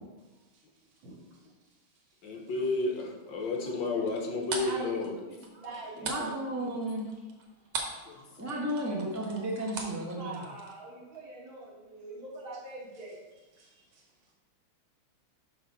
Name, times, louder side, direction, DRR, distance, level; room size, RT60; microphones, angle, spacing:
voice 1, 2.2-5.1 6.0-6.1 8.1-8.2, left 3 dB, 70° left, 2 dB, 1.6 m, -32 dB
voice 2, 3.6-4.1 4.6-6.2 8.1-8.2 10.2-13.2 13.6-13.8, right 2 dB, 65° right, -5 dB, 2.8 m, -44 dB
sound 1, 4.1-8.1 8.3-10.7, right 4 dB, 90° right, 1.9 m, -39 dB
voice 3, 6.0-7.1 8.4-10.4 13.6-13.7, right 1 dB, 15° right, -3 dB, 0.6 m, -33 dB
6.0 x 6.0 x 4.0 m, 1.1 s
omnidirectional pair, 2.3 m